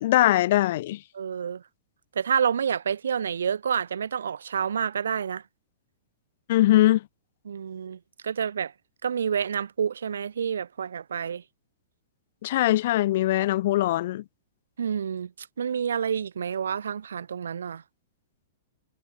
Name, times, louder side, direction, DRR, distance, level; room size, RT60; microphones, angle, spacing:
voice 1, 0.0-1.0 6.5-7.0 12.4-14.2, left 15 dB, 60° left, 0.7 m, -21 dB
voice 2, 1.1-1.6 2.2-5.4 7.5-8.7 9.0-11.4 14.8-17.8, right 7 dB, 80° right, 4.0 m, -28 dB
hypercardioid pair, 115°, 0 cm